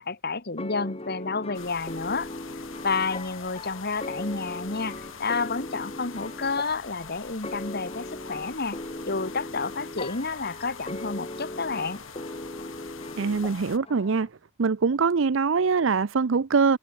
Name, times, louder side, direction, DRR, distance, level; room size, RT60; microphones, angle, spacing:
voice 1, 0.0-2.3 2.6-8.8 9.1-12.0, left 4 dB, 50° left, 1.7 m, -30 dB
sound 1, 0.6-14.3, left 2 dB, 30° left, 1.8 m, -39 dB
sound 2, 1.5-13.8, left 6 dB, 75° left, 5.0 m, -45 dB
voice 2, 13.2-14.3 14.6-16.8, right 5 dB, 65° right, 0.6 m, -23 dB
head